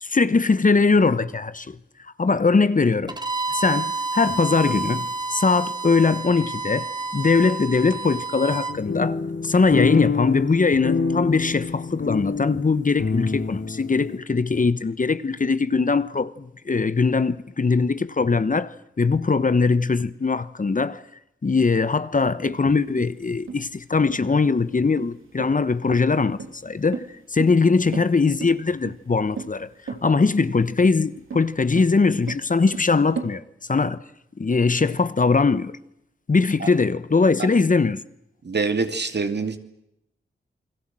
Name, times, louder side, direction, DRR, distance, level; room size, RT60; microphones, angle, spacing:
voice 1, 0.0-1.8 2.2-3.2 3.5-21.0 21.4-33.4 33.7-34.0 34.4-35.7 36.3-38.0, left 4 dB, 40° left, 1.1 m, -21 dB
Bowed string instrument, 3.1-8.8, right 3 dB, 20° right, 2.3 m, -29 dB
sound 1, 8.7-14.2, left 5 dB, 65° left, 2.5 m, -26 dB
sound 2, 22.5-33.3, right 5 dB, 85° right, 2.9 m, -37 dB
voice 2, 38.4-39.6, right 4 dB, 55° right, 2.7 m, -25 dB
29.0 x 21.0 x 7.7 m
cardioid pair, 55°, 21 cm